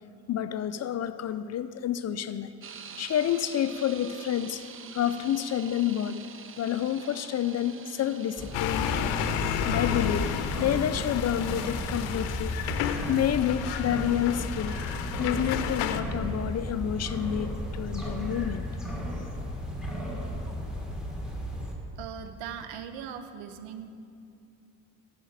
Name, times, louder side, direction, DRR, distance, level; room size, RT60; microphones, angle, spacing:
voice 1, 0.3-2.5 3.0-4.7 4.9-6.2 6.6-9.1 9.6-12.5 13.1-14.8 15.2-18.6, left 10 dB, 40° left, 12 dB, 0.4 m, -29 dB
sound 1, 2.6-15.1, right 7 dB, 30° right, 0.6 m, -48 dB
sound 2, 8.4-21.7, equal, ahead, 1.8 m, -34 dB
sound 3, 8.5-16.0, left 9 dB, 75° left, 0.7 m, -32 dB
voice 2, 22.0-23.9, right 8 dB, 75° right, 10 dB, 0.8 m, -39 dB
11.0 x 5.1 x 7.2 m, 2.5 s
hypercardioid pair, 55°, 44 cm